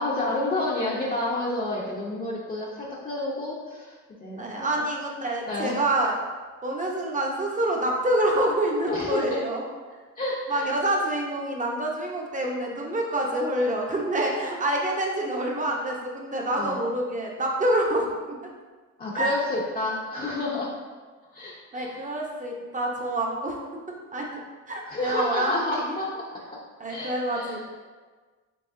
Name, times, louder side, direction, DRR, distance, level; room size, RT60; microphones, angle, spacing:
voice 1, 0.0-4.7 5.4-5.8 8.8-9.4 10.2-10.7 16.6-16.8 19.0-20.7 21.3-21.9 24.9-26.6 26.9-27.7, left 2 dB, 30° left, -6 dB, 0.8 m, -30 dB
voice 2, 4.3-6.1 6.6-9.7 10.5-18.4 19.2-19.3 21.7-23.6 24.1-24.4 24.7-26.0 26.8-27.7, right 1 dB, 25° right, -1 dB, 0.8 m, -27 dB
4.8 x 3.3 x 2.6 m, 1.4 s
cardioid pair, 90°, 30 cm